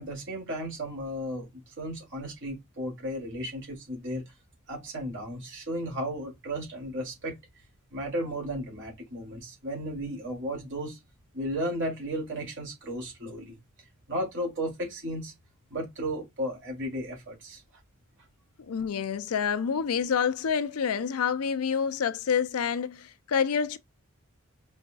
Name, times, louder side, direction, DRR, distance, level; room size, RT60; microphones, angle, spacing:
voice 1, 0.0-4.3 4.7-7.4 7.9-11.0 11.3-13.6 14.1-15.3 15.7-17.6, equal, 55° right, 2.8 m, -34 dB
voice 2, 18.7-23.8, left 7 dB, 80° left, 0.5 m, -28 dB
5.2 x 3.4 x 2.2 m
head